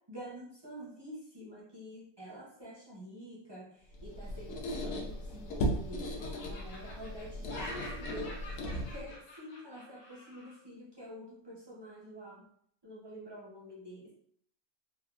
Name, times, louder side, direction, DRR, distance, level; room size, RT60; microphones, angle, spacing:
voice 1, 0.1-12.5 12.8-14.1, right 1 dB, 35° right, -6 dB, 0.4 m, -47 dB
Squeak, 3.9-9.2, equal, 70° left, 0.8 m, -37 dB
Laughter, 5.1-5.8 6.2-10.6, left 1 dB, 85° left, 1.1 m, -48 dB
3.3 x 2.1 x 2.3 m, 0.66 s
omnidirectional pair, 1.3 m